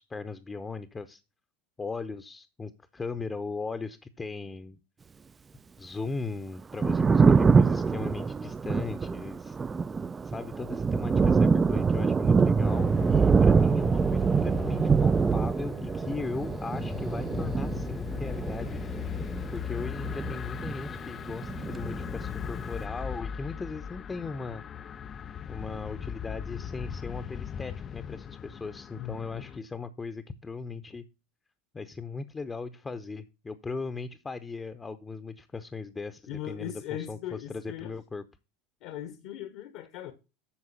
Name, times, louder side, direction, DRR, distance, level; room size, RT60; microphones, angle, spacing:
voice 1, 0.1-1.2 1.8-4.8 5.8-9.6 10.2-18.8 19.5-24.6 25.4-31.0 31.7-38.2, left 4 dB, 20° left, 0.8 m, -38 dB
Thunder, 6.6-21.0 21.3-22.5, right 5 dB, 25° right, 0.4 m, -25 dB
sound 1, 12.6-29.6, left 8 dB, 35° left, 0.4 m, -38 dB
voice 2, 29.0-29.5 36.3-37.9 38.8-40.1, left 11 dB, 60° left, 1.2 m, -39 dB
8.8 x 6.2 x 5.8 m
hypercardioid pair, 80°, 0 cm